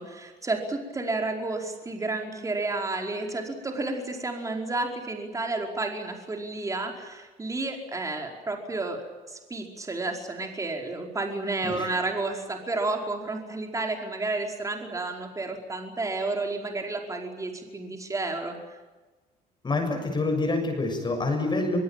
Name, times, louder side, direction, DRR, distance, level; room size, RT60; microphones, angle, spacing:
voice 1, 0.0-9.0 9.3-18.6, right 2 dB, 20° right, 2 dB, 4.9 m, -31 dB
voice 2, 19.6-21.8, left 2 dB, 25° left, 4 dB, 6.8 m, -27 dB
23.5 x 23.0 x 9.0 m, 1.3 s
cardioid pair, 110°, 17 cm